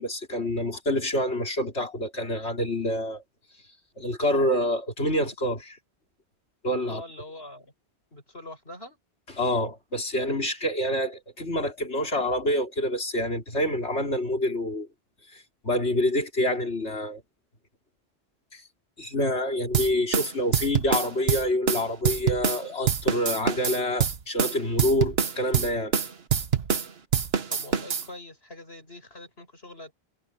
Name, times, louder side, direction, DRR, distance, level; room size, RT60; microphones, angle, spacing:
voice 1, 0.0-3.2 4.0-5.6 6.6-7.0 9.4-14.9 15.6-17.2 18.5-18.6 19.0-25.9, left 1 dB, 80° left, 4.1 m, -27 dB
voice 2, 6.9-7.7 8.1-9.0 27.5-29.9, left 1 dB, 65° left, 8.4 m, -43 dB
sound 1, 19.7-22.6 22.9-26.9 27.1-28.1, right 7 dB, 65° right, 1.4 m, -25 dB
omnidirectional pair, 1.1 m